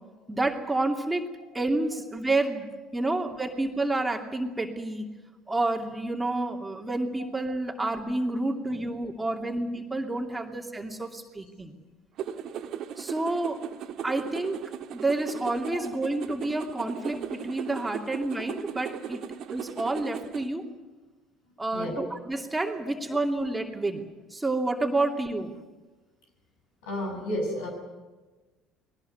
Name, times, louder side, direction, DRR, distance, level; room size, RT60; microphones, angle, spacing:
voice 1, 0.3-2.7 2.9-5.1 5.5-11.7 13.0-13.7 14.0-14.6 14.9-19.2 19.5-20.7 21.6-24.0 24.3-25.6, right 2 dB, 15° right, 3 dB, 2.7 m, -29 dB
sound 1, 12.2-20.5, right 9 dB, 55° right, 1.6 m, -37 dB
voice 2, 26.8-27.7, left 1 dB, 70° left, 2 dB, 6.8 m, -31 dB
21.5 x 19.0 x 9.4 m, 1.2 s
hypercardioid pair, 60°, 0 cm